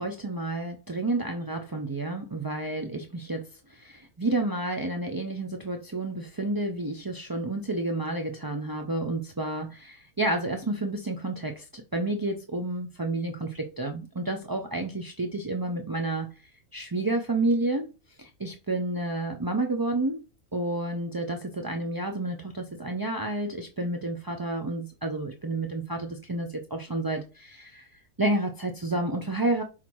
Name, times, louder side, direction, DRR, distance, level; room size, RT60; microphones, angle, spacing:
voice 1, 0.0-16.3 16.7-17.9 18.2-20.2 20.5-27.9 28.2-29.6, right 2 dB, 35° right, 0.3 m, -30 dB
5.7 x 4.1 x 4.7 m
omnidirectional pair, 1.6 m